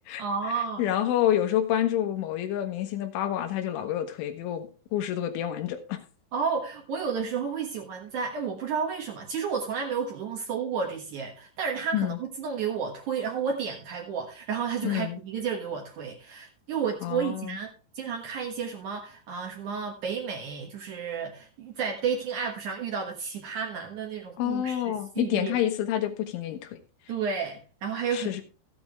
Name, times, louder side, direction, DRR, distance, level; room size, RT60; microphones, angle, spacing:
voice 1, 0.2-0.8 6.3-17.7 17.9-25.6 27.1-28.4, right 6 dB, 85° right, 1.7 m, -32 dB
voice 2, 0.8-6.0 11.9-12.2 14.8-15.2 17.0-17.6 24.4-26.8 28.1-28.4, left 11 dB, 80° left, 3.6 m, -28 dB
14.0 x 8.6 x 3.4 m
omnidirectional pair, 5.7 m